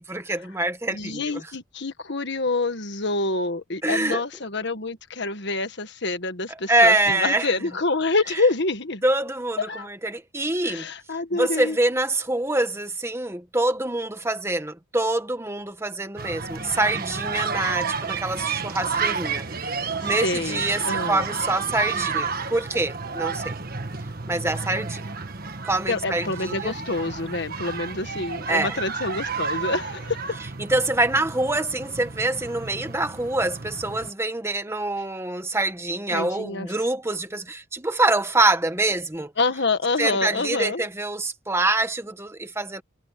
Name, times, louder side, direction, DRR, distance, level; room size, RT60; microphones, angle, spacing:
voice 1, 0.0-1.5 3.8-4.2 6.7-7.5 9.0-10.9 11.3-19.8 20.0-23.6 24.3-25.0 25.6-26.7 28.5-28.8 30.6-39.3 40.0-42.8, right 2 dB, 15° right, 1.5 m, -25 dB
voice 2, 0.9-9.0 9.6-9.9 10.6-11.8 20.0-21.2 25.9-30.3 36.1-36.7 39.4-40.9, left 3 dB, 60° left, 1.6 m, -27 dB
sound 1, 16.2-34.1, right 5 dB, 50° right, 1.6 m, -31 dB
head